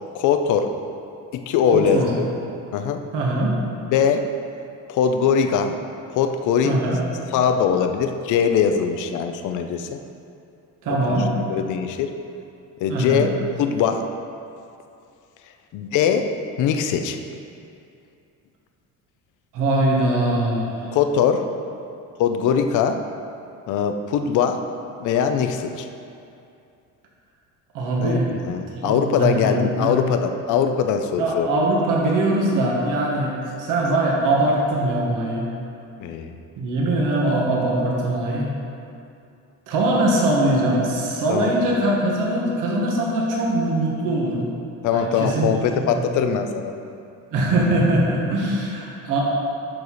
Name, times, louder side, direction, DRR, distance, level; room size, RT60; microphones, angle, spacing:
voice 1, 0.1-0.7 1.3-2.2 2.7-3.0 3.9-4.3 4.9-5.8 6.1-6.8 7.3-10.0 10.9-12.1 12.8-13.3 13.6-14.0 15.7-16.3 16.6-17.2 20.9-21.4 22.2-23.0 23.7-24.6 25.0-25.9 28.0-31.5 33.1-33.2 36.0-36.4 41.3-41.5 44.8-46.8, left 7 dB, 65° left, 7 dB, 0.7 m, -21 dB
voice 2, 1.7-2.1 3.1-3.6 6.6-7.0 10.8-11.3 12.9-13.3 19.5-20.7 27.7-28.3 28.8-30.0 31.2-35.4 36.6-38.5 39.7-44.5 44.9-45.5 45.9-46.0 47.3-49.2, right 1 dB, 70° right, -3 dB, 1.7 m, -22 dB
12.0 x 4.8 x 4.1 m, 2.6 s
cardioid pair, 145°, 33 cm